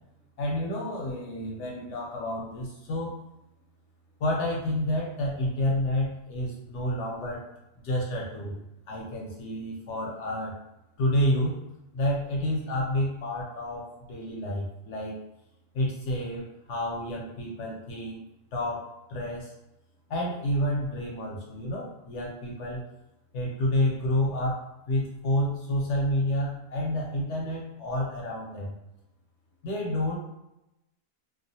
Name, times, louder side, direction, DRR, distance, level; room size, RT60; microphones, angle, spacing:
voice 1, 0.4-3.2 4.2-7.4 7.8-8.6 8.9-10.6 11.0-11.6 11.9-15.2 15.7-18.2 18.5-19.5 20.1-22.8 23.3-28.8 29.6-30.2, left 1 dB, 65° left, -2 dB, 0.8 m, -29 dB
2.4 x 2.3 x 2.6 m, 0.88 s
omnidirectional pair, 1.5 m